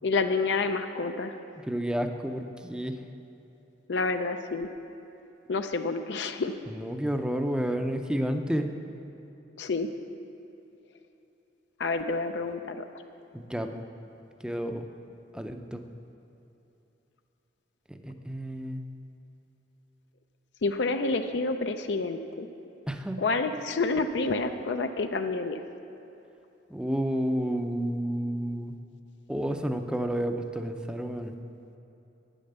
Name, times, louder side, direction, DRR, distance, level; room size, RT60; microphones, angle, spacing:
voice 1, 0.0-1.3 3.9-4.7 5.5-6.6 9.6-9.9 11.8-12.8 20.6-22.5 23.2-25.6, left 3 dB, 75° left, 7 dB, 0.5 m, -28 dB
voice 2, 1.7-3.0 6.7-8.7 13.3-13.9 14.4-14.9 15.3-15.8 17.9-18.8 22.9-23.2 26.7-28.8 29.3-31.3, equal, 5° right, 6 dB, 0.5 m, -30 dB
10.0 x 9.2 x 6.7 m, 2.9 s
head